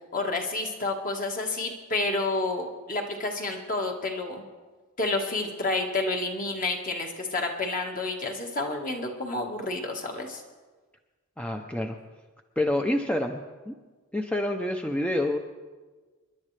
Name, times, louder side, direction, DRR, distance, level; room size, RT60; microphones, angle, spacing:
voice 1, 0.1-4.4 5.0-10.4, left 2 dB, 40° left, 2 dB, 1.5 m, -30 dB
voice 2, 11.4-12.0 12.6-13.7 14.1-15.4, left 1 dB, 5° left, 4 dB, 0.5 m, -27 dB
28.0 x 11.0 x 3.3 m, 1.3 s
head